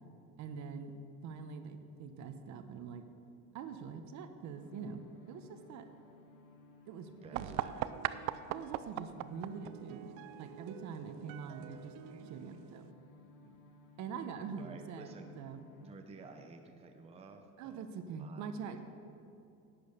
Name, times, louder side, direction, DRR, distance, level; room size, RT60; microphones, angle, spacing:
voice 1, 0.4-0.9 1.2-3.0 3.5-5.8 6.9-7.5 8.5-10.1 10.4-11.9 12.3-12.9 14.0-15.6 17.6-18.8, right 6 dB, 55° right, 8 dB, 0.9 m, -44 dB
sound 1, 4.6-16.0, left 3 dB, 65° left, 1.5 m, -60 dB
voice 2, 7.2-7.9 10.7-10.9 12.1-12.6 13.4-13.6 14.6-15.3 15.8-17.8 18.2-18.8, right 4 dB, 20° right, 4 dB, 0.7 m, -53 dB
sound 2, 7.3-12.9, right 13 dB, 75° right, 0.5 m, -41 dB
11.0 x 8.7 x 6.6 m, 2.6 s
cardioid pair, 160°, 34 cm